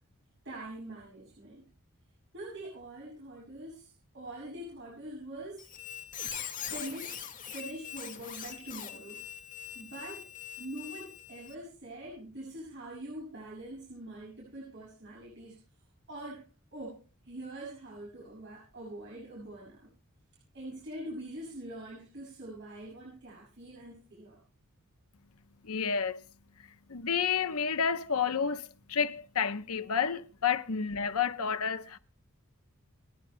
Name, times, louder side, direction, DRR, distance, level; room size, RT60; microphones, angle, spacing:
voice 1, 0.4-1.7 2.3-5.7 6.7-7.2 7.5-9.2 9.7-10.3 10.6-15.6 16.1-17.0 17.2-19.9 20.5-24.4, right 1 dB, 55° right, 6.9 m, -44 dB
Squeak, 5.6-11.5, left 9 dB, 40° left, 1.9 m, -42 dB
voice 2, 25.6-26.2 26.9-32.0, left 6 dB, 80° left, 0.9 m, -30 dB
29.0 x 11.0 x 2.2 m
head